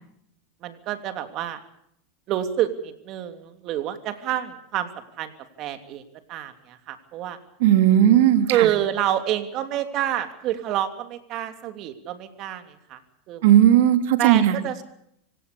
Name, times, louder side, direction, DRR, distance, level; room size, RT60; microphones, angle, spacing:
voice 1, 0.6-1.6 2.3-5.3 5.6-6.0 6.3-7.4 8.5-13.0 13.3-13.4 14.2-14.8, right 12 dB, 50° right, 8 dB, 3.1 m, -28 dB
voice 2, 7.6-8.7 13.4-14.6, right 11 dB, 70° right, 9 dB, 2.8 m, -16 dB
25.5 x 17.5 x 6.9 m, 0.72 s
supercardioid pair, 115°, 0 cm